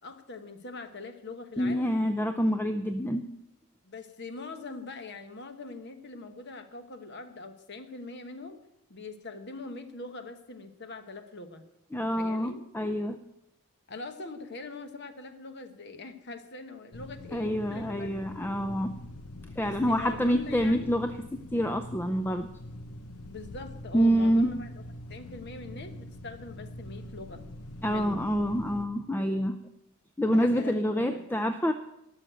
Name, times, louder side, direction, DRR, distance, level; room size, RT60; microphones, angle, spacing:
voice 1, 0.0-2.0 3.8-8.6 8.9-11.6 12.2-12.6 13.9-18.4 19.5-20.9 23.2-24.7 25.1-27.4 27.9-28.3 30.3-31.2, left 3 dB, 50° left, 8 dB, 1.1 m, -42 dB
voice 2, 1.6-3.2 11.9-13.2 17.3-18.9 19.6-22.5 23.9-24.5 27.8-29.6 30.2-31.7, equal, 10° left, 7 dB, 0.4 m, -27 dB
sound 1, 16.9-28.9, left 1 dB, 90° left, 0.9 m, -44 dB
12.5 x 6.5 x 8.8 m, 0.85 s
head